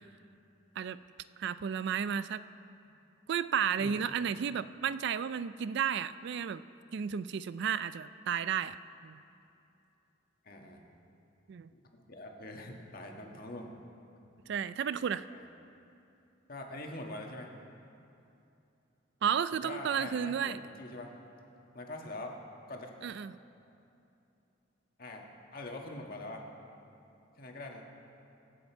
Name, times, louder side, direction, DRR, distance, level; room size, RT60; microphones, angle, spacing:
voice 1, 1.4-2.4 3.3-6.6 6.9-8.8 9.0-9.2 11.5-11.7 14.5-15.3 19.2-20.6 23.0-23.3, right 7 dB, 60° right, 14 dB, 0.3 m, -32 dB
voice 2, 10.4-10.8 11.7-13.7 15.3-15.4 16.5-17.5 19.5-21.1 21.7-22.4 22.7-22.9 25.0-25.3 25.5-26.5 27.4-27.9, left 2 dB, 50° left, 1 dB, 1.5 m, -43 dB
23.5 x 8.0 x 4.6 m, 2.7 s
head